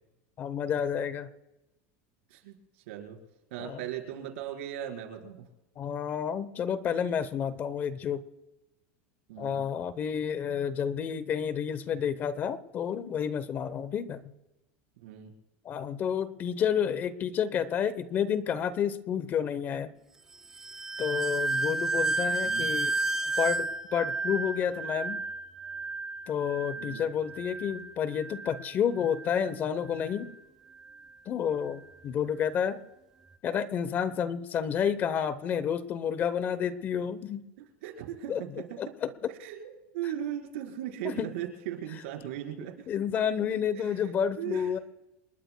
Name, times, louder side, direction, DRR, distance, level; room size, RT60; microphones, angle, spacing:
voice 1, 0.4-1.3 3.6-3.8 5.8-8.2 9.4-14.3 15.6-19.9 21.0-22.9 23.4-25.2 26.3-30.3 31.3-32.8 33.4-37.4 38.3-38.4 38.8-39.1 41.0-41.3 42.9-44.8, left 8 dB, 25° left, 15 dB, 0.8 m, -30 dB
voice 2, 2.3-3.2 3.5-5.5 9.3-9.6 15.0-15.3 22.1-22.6 26.7-27.0 37.6-38.8 39.3-42.9 43.7-44.1 44.4-44.7, right 11 dB, 75° right, 2 dB, 4.3 m, -38 dB
sound 1, 20.6-29.5 29.9-30.3 30.8-31.1, right 3 dB, 10° right, 0.4 m, -32 dB
28.0 x 21.0 x 2.2 m, 0.98 s
supercardioid pair, 160°, 7 cm